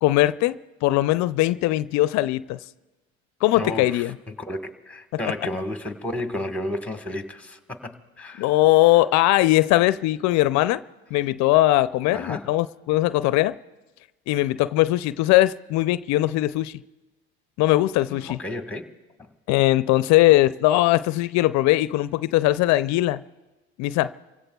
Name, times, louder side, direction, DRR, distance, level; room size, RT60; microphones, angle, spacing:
voice 1, 0.0-2.6 3.4-4.1 8.4-10.8 11.1-13.6 14.3-16.8 17.6-18.4 19.5-23.2 23.8-24.1, left 16 dB, 65° left, 0.4 m, -20 dB
voice 2, 3.5-8.5 12.1-12.5 18.1-18.8, left 1 dB, 5° left, 1.3 m, -32 dB
28.5 x 16.5 x 2.3 m
supercardioid pair, 80°, 30 cm